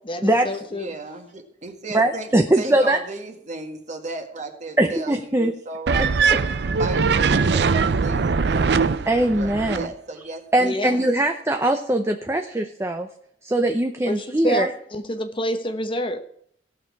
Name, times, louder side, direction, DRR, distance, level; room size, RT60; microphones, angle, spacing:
voice 1, 0.1-0.9 10.6-11.0 14.1-16.2, equal, 30° left, 0.9 m, -28 dB
voice 2, 0.7-2.3 2.6-11.1, right 2 dB, 40° right, 1.9 m, -35 dB
voice 3, 1.9-3.0 4.8-5.5 9.0-9.9 10.5-13.1 13.4-14.7, right 1 dB, 15° right, 0.7 m, -21 dB
sound 1, 5.9-9.9, right 5 dB, 65° right, 0.5 m, -21 dB
17.5 x 6.5 x 4.7 m
head